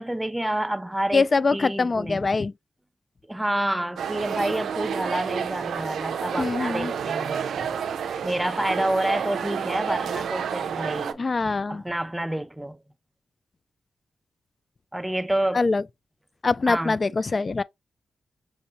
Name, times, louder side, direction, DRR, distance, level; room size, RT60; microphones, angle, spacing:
voice 1, 0.0-1.2 1.5-2.2 3.3-7.4 8.2-11.2 11.7-12.8 14.9-15.7 16.7-17.0, right 1 dB, 10° right, 0.5 m, -28 dB
voice 2, 1.1-2.5 6.4-6.9 11.2-11.8 15.5-15.8 16.4-17.6, left 4 dB, 45° left, 0.3 m, -23 dB
sound 1, 4.0-11.1, right 7 dB, 85° right, 0.4 m, -30 dB
5.7 x 2.7 x 2.8 m
cardioid pair, 50°, 0 cm